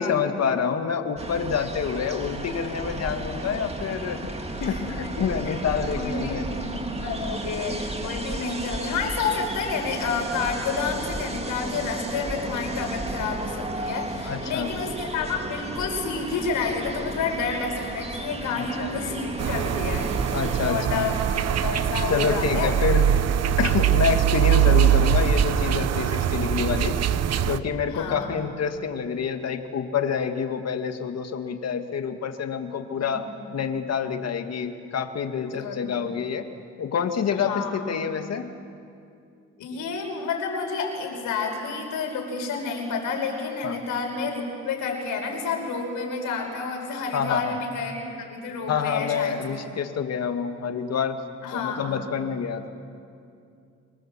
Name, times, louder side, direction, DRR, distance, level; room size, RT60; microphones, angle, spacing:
voice 1, 0.0-4.3 4.6-6.4 6.9-7.0 14.2-14.7 18.6-18.9 20.3-21.1 22.1-23.0 23.6-27.0 27.5-33.3 33.5-36.5 36.8-38.5 43.6-43.8 47.1-47.6 48.7-51.2 51.5-52.7, left 6 dB, 55° left, 6 dB, 2.2 m, -27 dB
sound 1, 1.2-20.7, right 2 dB, 20° right, 2.3 m, -33 dB
voice 2, 5.9-21.2 21.6-22.7 27.9-28.3 32.8-33.2 35.4-36.0 37.3-38.1 39.6-49.4 51.4-52.0, left 5 dB, 85° left, 2 dB, 5.4 m, -30 dB
sound 2, 19.4-27.6, right 9 dB, 55° right, 0.9 m, -22 dB
26.5 x 22.0 x 7.7 m, 2.4 s
cardioid pair, 90°, 30 cm